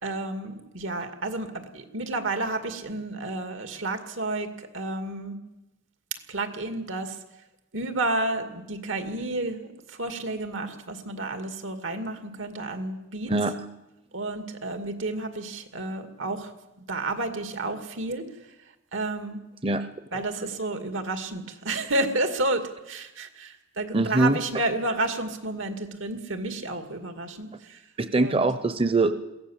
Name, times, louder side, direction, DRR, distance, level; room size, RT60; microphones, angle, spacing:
voice 1, 0.0-5.4 6.3-7.2 7.7-13.3 14.1-16.5 16.9-18.3 18.9-19.4 20.1-27.8 28.1-28.4, right 2 dB, 85° right, 7 dB, 2.4 m, -31 dB
voice 2, 13.3-13.6 19.6-19.9 20.1-20.2 23.9-24.4 28.0-29.1, right 2 dB, 30° right, 11 dB, 0.7 m, -23 dB
22.5 x 16.5 x 7.3 m, 0.97 s
head